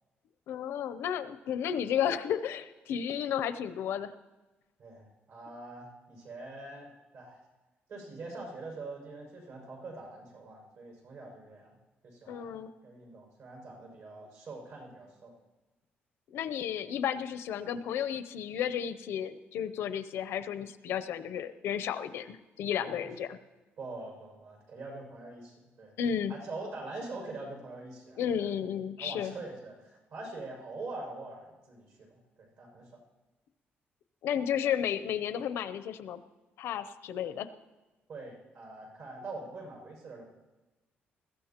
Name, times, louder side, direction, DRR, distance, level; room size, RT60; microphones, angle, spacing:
voice 1, 0.5-4.1 12.3-12.7 16.3-23.4 26.0-26.4 28.2-29.3 34.2-36.2 36.6-37.5, left 9 dB, 85° left, 12 dB, 0.6 m, -33 dB
voice 2, 4.8-7.4 7.9-11.8 12.0-15.4 22.8-23.1 23.8-25.9 26.3-28.5 29.0-33.0 38.1-40.3, right 2 dB, 70° right, -1 dB, 6.1 m, -44 dB
21.0 x 16.0 x 3.0 m, 1.2 s
cardioid pair, 175°, 4 cm